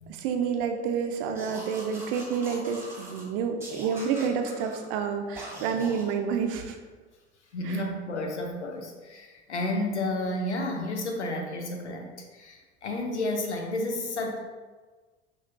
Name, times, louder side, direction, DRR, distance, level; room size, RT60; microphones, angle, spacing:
voice 1, 0.1-6.8 7.6-7.8, right 6 dB, 55° right, 5 dB, 0.6 m, -29 dB
sound 1, 1.3-3.2 3.6-4.8 5.3-6.1, right 1 dB, 5° right, 1.2 m, -42 dB
voice 2, 7.5-14.4, left 1 dB, 85° left, 2 dB, 0.6 m, -31 dB
6.0 x 2.5 x 2.5 m, 1.3 s
figure-of-eight pair, 60°, 34 cm